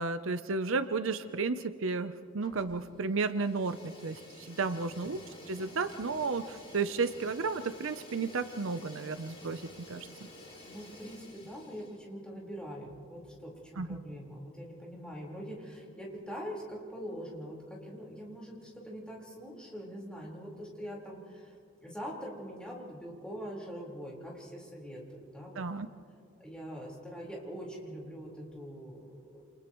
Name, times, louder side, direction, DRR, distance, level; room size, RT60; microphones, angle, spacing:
voice 1, 0.0-5.2 5.5-9.6 9.9-10.1 13.8-14.0 25.6-25.9, right 4 dB, 65° right, 11 dB, 0.6 m, -33 dB
Fire, 2.4-2.9 3.2-12.0, left 1 dB, 25° left, 5.9 m, -51 dB
voice 2, 4.7-5.0 10.6-21.6 21.8-25.6 26.4-29.4, equal, 5° left, -4 dB, 4.3 m, -43 dB
29.5 x 28.5 x 3.1 m, 2.2 s
head